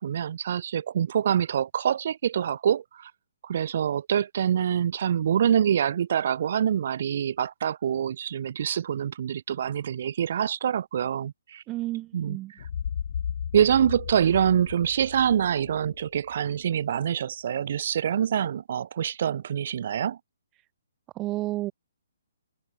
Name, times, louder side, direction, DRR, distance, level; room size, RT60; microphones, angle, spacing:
voice 1, 0.0-3.1 3.4-11.6 12.1-12.4 13.5-20.2, right 9 dB, 55° right, 1.8 m, -25 dB
voice 2, 11.7-12.5 21.1-21.7, right 17 dB, 20° right, 1.0 m, -31 dB
sound 1, 12.6-16.5, left 8 dB, 55° left, 0.5 m, -35 dB
open air
hypercardioid pair, 140°, 0 cm